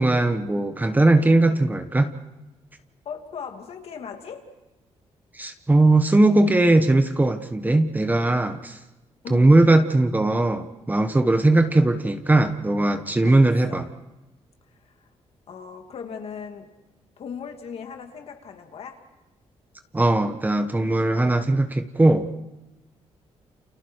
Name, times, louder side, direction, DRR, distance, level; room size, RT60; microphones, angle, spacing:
voice 1, 0.0-2.1 5.3-8.8 9.3-13.9 19.9-22.3, right 2 dB, 15° right, 8 dB, 1.3 m, -19 dB
voice 2, 3.0-4.5 9.2-9.5 13.3-13.9 14.8-14.9 15.5-16.7 17.2-19.0, left 6 dB, 65° left, 4 dB, 2.8 m, -38 dB
29.5 x 28.5 x 4.8 m, 1.0 s
cardioid pair, 115°, 11 cm